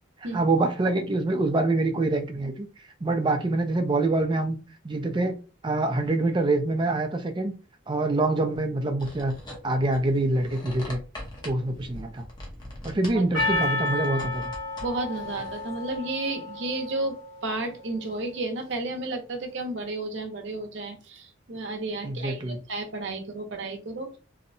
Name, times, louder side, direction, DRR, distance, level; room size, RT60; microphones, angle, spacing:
voice 1, 0.3-2.7 3.0-4.6 4.8-5.3 5.6-7.5 7.9-9.3 9.6-11.0 11.4-12.2 12.8-14.5 22.0-22.6, right 2 dB, 25° right, 6 dB, 0.3 m, -25 dB
sound 1, 9.0-16.0, left 1 dB, 20° left, 0.7 m, -42 dB
Percussion, 13.3-17.7, left 2 dB, 85° left, 1.1 m, -31 dB
voice 2, 14.8-24.2, right 2 dB, 65° right, 5 dB, 0.6 m, -32 dB
2.7 x 2.1 x 2.5 m, 0.32 s
head